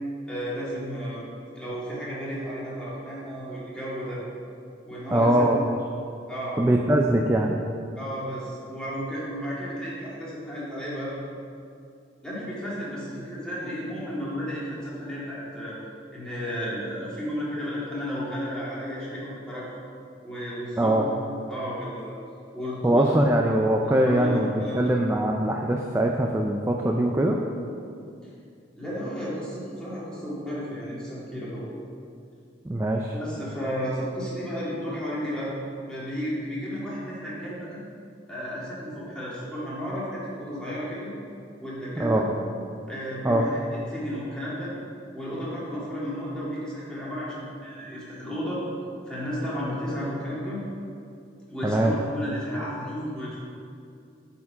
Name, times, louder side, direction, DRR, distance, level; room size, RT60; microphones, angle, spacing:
voice 1, 0.3-1.2 1.5-4.2 4.8-5.5 6.3-6.6 8.0-11.1 12.2-15.8 16.1-19.7 20.2-21.0 21.5-22.2 22.5-23.2 23.8-24.9 28.8-31.6 33.1-35.5 35.9-37.8 38.3-41.1 41.6-42.3 42.9-43.6 43.9-44.7 45.1-48.6 49.1-50.6 51.5-53.4, equal, 5° left, -9 dB, 2.0 m, -33 dB
voice 2, 5.1-5.8 6.6-7.6 20.8-21.1 22.8-27.4 32.6-33.1 42.0-42.2 43.2-43.4 51.6-51.9, right 1 dB, 15° right, 1 dB, 0.3 m, -22 dB
8.4 x 4.4 x 5.6 m, 2.5 s
head